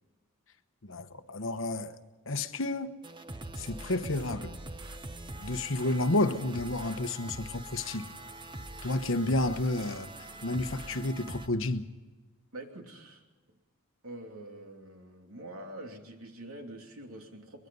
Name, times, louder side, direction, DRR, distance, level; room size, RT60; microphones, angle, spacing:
voice 1, 0.8-2.0 2.3-2.9 3.6-4.6 5.4-8.1 8.8-11.9, left 2 dB, 65° left, 1.1 m, -31 dB
sound 1, 3.0-11.5, right 2 dB, 20° right, 1.0 m, -43 dB
voice 2, 12.5-13.2 14.0-17.7, right 1 dB, 80° right, 2.9 m, -45 dB
23.0 x 21.5 x 5.5 m
head